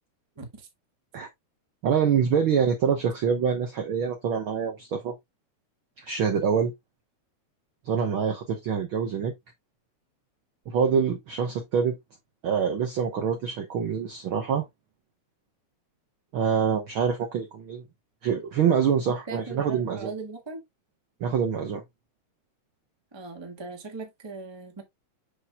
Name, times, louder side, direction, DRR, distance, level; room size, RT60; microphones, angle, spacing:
voice 1, 1.8-5.1 6.0-6.7 7.8-9.3 10.7-12.0 12.4-14.6 16.3-17.8 18.2-20.1 21.2-21.8, right 7 dB, 65° right, 1.3 m, -25 dB
voice 2, 19.1-20.6 23.1-24.8, right 3 dB, 15° right, 0.9 m, -39 dB
7.1 x 6.0 x 2.3 m
omnidirectional pair, 3.5 m